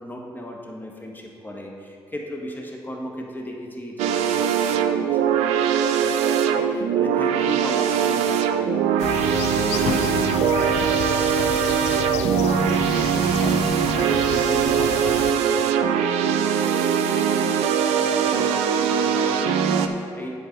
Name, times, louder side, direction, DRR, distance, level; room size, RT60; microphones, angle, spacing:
voice 1, 0.0-13.6 13.9-20.4, equal, 20° left, 0 dB, 1.8 m, -36 dB
sound 1, 4.0-19.9, right 8 dB, 85° right, 0.4 m, -21 dB
sound 2, 9.0-15.3, left 8 dB, 80° left, 0.5 m, -31 dB
8.2 x 4.6 x 6.7 m, 2.3 s
hypercardioid pair, 45°, 11 cm